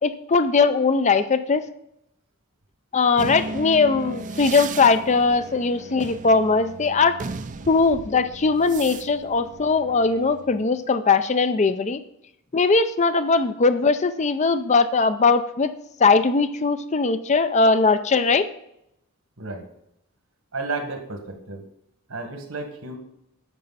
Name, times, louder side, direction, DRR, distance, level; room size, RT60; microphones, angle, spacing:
voice 1, 0.0-1.6 2.9-7.2 7.7-12.0 12.5-15.7 16.0-18.5, left 4 dB, 30° left, 11 dB, 0.5 m, -20 dB
sound 1, 3.2-10.7, right 3 dB, 35° right, 0.4 m, -36 dB
voice 2, 20.5-21.6 22.1-23.0, right 3 dB, 70° right, 5 dB, 1.8 m, -32 dB
10.0 x 6.9 x 4.1 m, 0.79 s
head